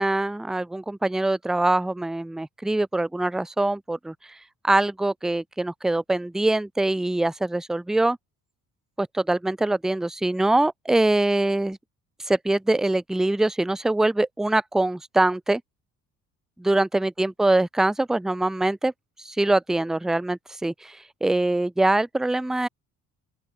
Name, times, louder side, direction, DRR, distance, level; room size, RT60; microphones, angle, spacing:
voice 1, 0.0-4.4 4.6-8.2 9.0-11.8 12.2-15.6 16.6-18.9 19.2-22.7, right 2 dB, ahead, 0.4 m, -23 dB
open air
hypercardioid pair, 45°, 45 cm